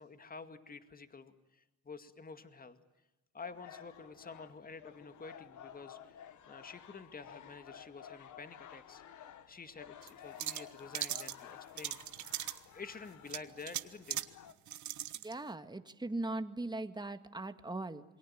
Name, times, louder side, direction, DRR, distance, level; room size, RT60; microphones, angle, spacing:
voice 1, 0.0-2.8 3.3-6.2 6.5-9.0 9.5-12.0 12.4-12.5 12.7-14.2, left 4 dB, 30° left, 9 dB, 2.2 m, -49 dB
sound 1, 3.4-14.5, left 9 dB, 75° left, 1.8 m, -54 dB
sound 2, 10.0-10.1 10.4-11.3 11.8-12.6 13.3-14.3 14.7-15.3, right 12 dB, 70° right, 1.3 m, -39 dB
voice 2, 15.2-18.0, right 2 dB, 15° right, 9 dB, 2.0 m, -39 dB
28.0 x 22.5 x 8.9 m, 1.0 s
cardioid pair, 90°, 30 cm